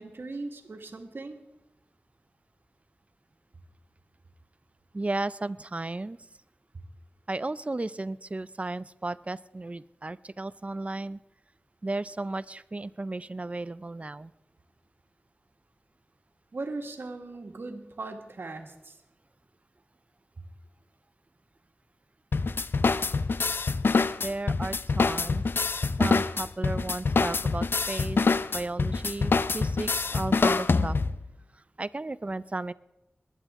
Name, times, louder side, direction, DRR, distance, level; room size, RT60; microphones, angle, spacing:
voice 1, 0.0-1.4 16.5-19.0, right 3 dB, 80° right, 5 dB, 1.7 m, -38 dB
voice 2, 4.9-6.2 7.3-11.2 11.8-14.3 24.2-25.5 26.0-28.2 28.5-31.0 31.5-32.7, right 2 dB, 35° right, 17 dB, 0.5 m, -34 dB
sound 1, 22.3-31.2, left 4 dB, 80° left, 0.5 m, -26 dB
21.5 x 11.0 x 3.6 m, 0.93 s
wide cardioid pair, 65°, 4 cm